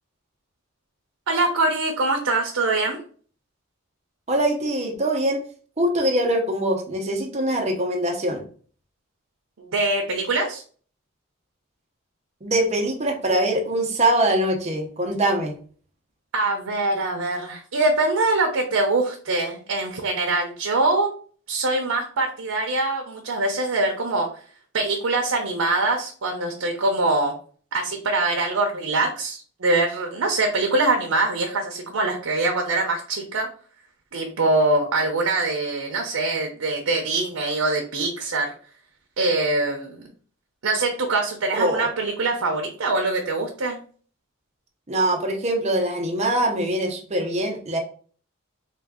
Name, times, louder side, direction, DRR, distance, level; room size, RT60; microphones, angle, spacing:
voice 1, 1.3-3.0 9.6-10.6 16.3-21.1 21.5-24.3 24.7-27.3 27.7-33.5 34.1-38.5 39.2-40.0 40.6-43.8, right 2 dB, 85° right, 2 dB, 0.7 m, -23 dB
voice 2, 4.3-5.4 5.8-8.4 12.4-15.6 41.5-41.9 44.9-47.8, right 1 dB, 30° right, 3 dB, 0.7 m, -23 dB
3.7 x 2.3 x 3.6 m, 0.44 s
head